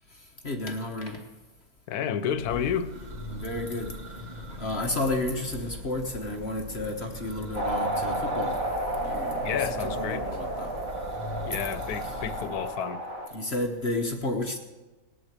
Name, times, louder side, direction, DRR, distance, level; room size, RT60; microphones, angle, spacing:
voice 1, 0.1-1.3 3.3-4.0 4.5-8.6 9.0-10.8 12.0-12.2 13.3-14.6, left 2 dB, 45° left, 1.3 m, -32 dB
voice 2, 1.9-2.9 9.4-10.2 11.5-13.0, left 8 dB, 85° left, 1.3 m, -30 dB
Church bell, 2.2-12.5, left 1 dB, 30° right, 1.2 m, -41 dB
sound 1, 7.5-13.3, right 1 dB, 65° right, 2.3 m, -32 dB
19.0 x 7.8 x 8.0 m
omnidirectional pair, 1.6 m